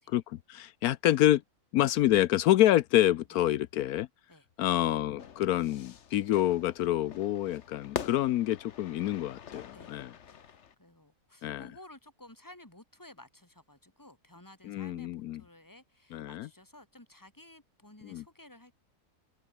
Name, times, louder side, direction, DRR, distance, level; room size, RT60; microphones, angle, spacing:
voice 1, 0.0-1.4 1.7-4.1 4.6-10.1 11.4-11.7 14.7-15.4 16.1-16.5 18.0-18.2, left 14 dB, 80° left, 1.1 m, -27 dB
Fire / Fireworks, 5.2-10.7, left 7 dB, 55° left, 1.3 m, -44 dB
voice 2, 9.7-18.7, left 1 dB, 10° left, 3.0 m, -54 dB
open air
omnidirectional pair, 1.6 m